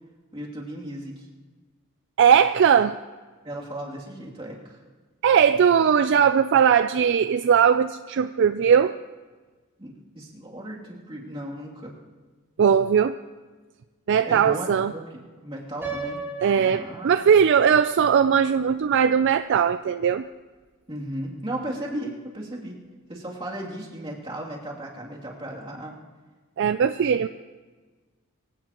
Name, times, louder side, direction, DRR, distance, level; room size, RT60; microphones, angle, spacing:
voice 1, 0.3-1.3 3.4-4.8 9.8-12.0 14.2-16.2 16.6-17.1 20.9-22.8 23.1-26.0, right 1 dB, 25° right, -4 dB, 2.7 m, -36 dB
voice 2, 2.2-3.0 5.2-9.0 12.6-13.1 14.1-14.9 16.4-20.3 26.6-27.3, right 7 dB, 55° right, 11 dB, 0.3 m, -19 dB
Piano, 15.8-17.8, right 4 dB, 10° right, 5.7 m, -35 dB
24.0 x 16.5 x 3.0 m, 1.4 s
head